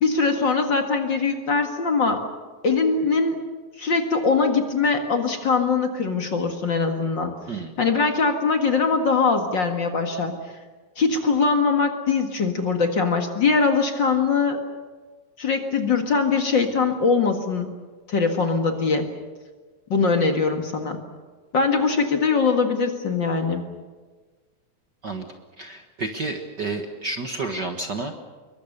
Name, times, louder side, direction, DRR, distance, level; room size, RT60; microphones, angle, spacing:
voice 1, 0.0-2.2 2.6-3.5 3.8-7.3 7.8-10.3 11.0-14.6 15.4-17.7 18.1-19.1 19.9-21.0 21.5-23.6, left 4 dB, 40° left, 5 dB, 2.2 m, -22 dB
voice 2, 25.6-28.2, right 3 dB, 45° right, 4 dB, 1.6 m, -30 dB
26.5 x 23.0 x 6.8 m, 1.4 s
omnidirectional pair, 3.4 m